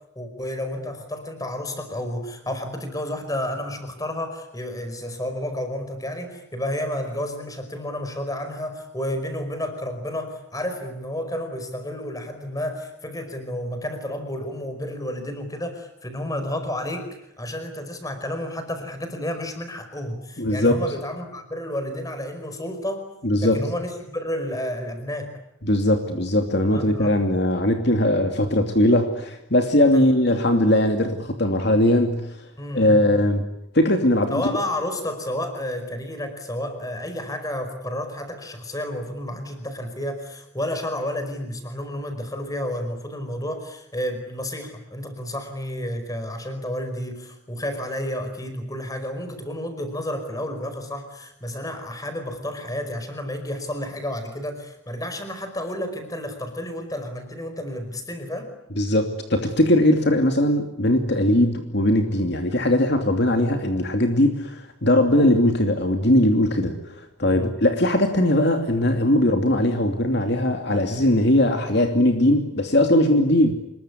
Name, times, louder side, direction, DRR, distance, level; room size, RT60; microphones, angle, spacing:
voice 1, 0.1-17.1 17.4-23.1 23.4-25.3 26.7-27.2 29.9-30.0 32.6-33.0 34.3-58.5 67.3-67.6, left 1 dB, 15° left, 8 dB, 5.0 m, -31 dB
voice 2, 20.4-20.8 23.2-23.6 25.6-32.4 32.7-33.4 33.7-34.5 58.8-66.8 67.2-73.5, left 1 dB, 55° left, 5 dB, 2.7 m, -20 dB
27.0 x 22.0 x 9.9 m, 0.81 s
head